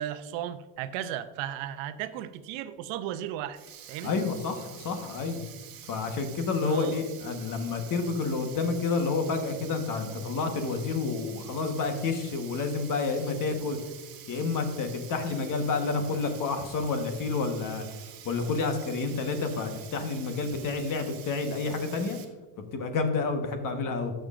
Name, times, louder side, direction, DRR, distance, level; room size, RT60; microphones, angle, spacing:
voice 1, 0.0-3.6 3.9-4.2 6.6-7.0, right 11 dB, 70° right, 12 dB, 0.7 m, -35 dB
Sink (filling or washing), 3.5-22.2, right 9 dB, 45° right, 1.3 m, -47 dB
voice 2, 4.0-5.4 5.9-13.8 14.3-17.9 18.2-22.2 22.7-24.1, left 4 dB, 40° left, 6 dB, 1.3 m, -29 dB
12.5 x 6.4 x 2.5 m, 1.3 s
cardioid pair, 135°, 47 cm